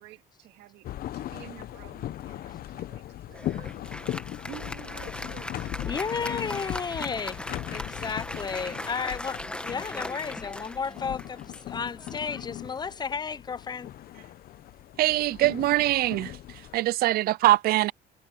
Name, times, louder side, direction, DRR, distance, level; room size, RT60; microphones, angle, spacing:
voice 1, 0.0-3.7 4.5-7.6 8.3-8.9, right 15 dB, 90° right, 2.3 m, -51 dB
sound 1, 0.8-16.8, left 13 dB, 60° left, 0.9 m, -39 dB
Applause, 3.3-13.1, left 1 dB, 5° left, 1.8 m, -39 dB
sound 2, 4.8-7.5, right 3 dB, 20° right, 5.4 m, -60 dB
voice 2, 5.9-7.4 7.7-13.9, left 5 dB, 25° left, 0.7 m, -33 dB
voice 3, 15.0-16.4 16.7-17.9, right 16 dB, 65° right, 0.4 m, -23 dB
cardioid pair, 110°, 17 cm